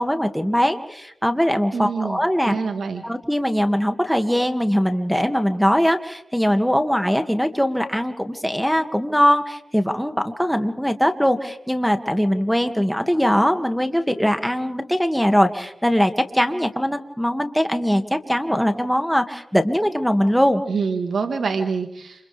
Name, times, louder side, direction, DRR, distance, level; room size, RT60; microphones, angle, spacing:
voice 1, 0.0-2.6 3.0-20.6, equal, ahead, 6 dB, 2.2 m, -21 dB
voice 2, 1.7-3.0 20.7-22.3, right 5 dB, 85° right, 6 dB, 1.6 m, -26 dB
30.0 x 28.5 x 3.5 m, 0.79 s
cardioid pair, 60°, 0 cm